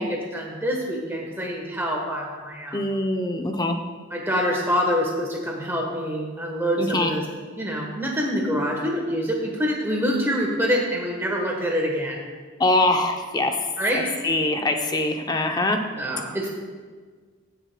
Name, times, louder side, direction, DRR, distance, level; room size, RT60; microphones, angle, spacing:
voice 1, 0.0-2.8 4.1-7.3 7.6-12.2 13.8-14.1 16.0-16.5, equal, 10° right, 0 dB, 1.1 m, -26 dB
voice 2, 2.7-3.8 6.8-7.1 12.6-13.6 13.9-15.8, left 2 dB, 20° left, 4 dB, 0.5 m, -23 dB
16.0 x 6.7 x 2.2 m, 1.5 s
head